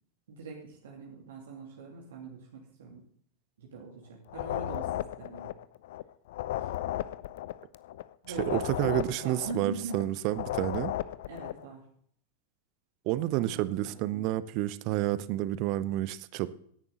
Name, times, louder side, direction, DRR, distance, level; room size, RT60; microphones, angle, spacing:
voice 1, 0.3-3.0 3.6-5.5 6.6-6.7 8.2-10.0 11.3-11.8 13.2-14.2, right 4 dB, 60° right, -1 dB, 2.7 m, -42 dB
sound 1, 4.3-6.0 6.3-10.0 10.3-11.6, left 14 dB, 55° left, 0.6 m, -35 dB
voice 2, 8.5-10.9 13.1-16.5, right 15 dB, 45° right, 17 dB, 0.8 m, -30 dB
16.5 x 11.0 x 3.9 m, 0.63 s
figure-of-eight pair, 90°, 0 cm